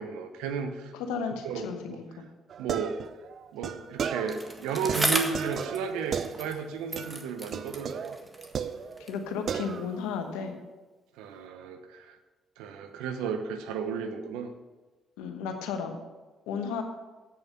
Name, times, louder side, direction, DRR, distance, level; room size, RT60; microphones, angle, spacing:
voice 1, 0.0-0.9 1.4-2.0 2.6-3.0 3.5-8.2 11.2-12.2 12.6-14.5, right 6 dB, 80° right, 7 dB, 0.8 m, -33 dB
voice 2, 0.9-2.1 9.0-10.6 15.2-16.0 16.5-16.8, left 6 dB, 80° left, 6 dB, 1.1 m, -33 dB
sound 1, 2.5-4.5 4.9-6.7 7.0-7.2 7.5-9.2 9.5-10.1, right 7 dB, 60° right, 0.5 m, -36 dB
Bicycle, 4.3-6.6 6.9-9.3 10.1-10.2, right 1 dB, 20° right, 1.6 m, -34 dB
8.2 x 7.0 x 6.6 m, 1.2 s
hypercardioid pair, 50°, 0 cm